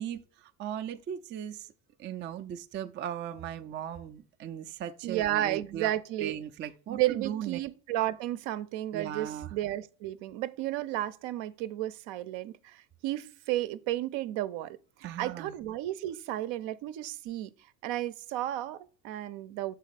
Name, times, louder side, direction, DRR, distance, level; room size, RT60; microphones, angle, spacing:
voice 1, 0.0-1.7 2.0-5.9 6.2-7.6 8.9-9.5 15.0-15.5, right 10 dB, 25° right, 0.3 m, -38 dB
voice 2, 5.0-6.4 6.9-17.5 17.8-19.7, right 14 dB, 65° right, 0.6 m, -33 dB
6.4 x 4.1 x 4.0 m
supercardioid pair, 105°, 48 cm